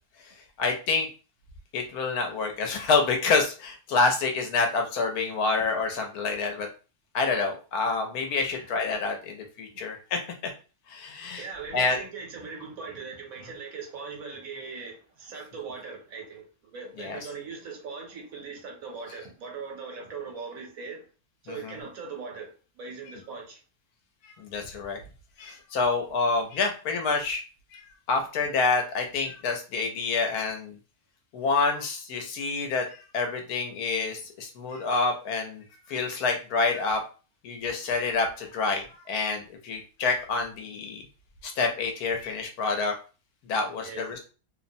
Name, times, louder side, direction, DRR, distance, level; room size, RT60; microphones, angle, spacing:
voice 1, 0.6-1.1 1.7-6.7 7.1-10.2 10.9-11.4 11.7-12.0 17.0-17.2 24.2-25.0 25.4-27.4 27.7-30.8 31.3-32.9 33.1-37.0 37.4-41.0 41.4-42.9 43.5-44.3, left 4 dB, 80° left, 1.1 m, -27 dB
voice 2, 11.4-21.0 21.4-23.6 43.8-44.2, right 5 dB, 70° right, 1.2 m, -40 dB
2.8 x 2.0 x 2.5 m
omnidirectional pair, 1.6 m